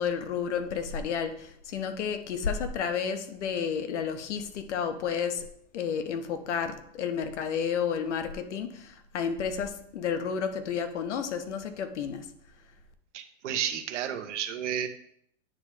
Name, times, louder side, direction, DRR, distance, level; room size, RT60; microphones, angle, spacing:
voice 1, 0.0-5.4 5.7-12.3, left 7 dB, 70° left, 8 dB, 1.1 m, -31 dB
voice 2, 13.1-14.9, right 9 dB, 75° right, 9 dB, 1.0 m, -32 dB
9.0 x 3.2 x 4.9 m, 0.68 s
supercardioid pair, 160°, 36 cm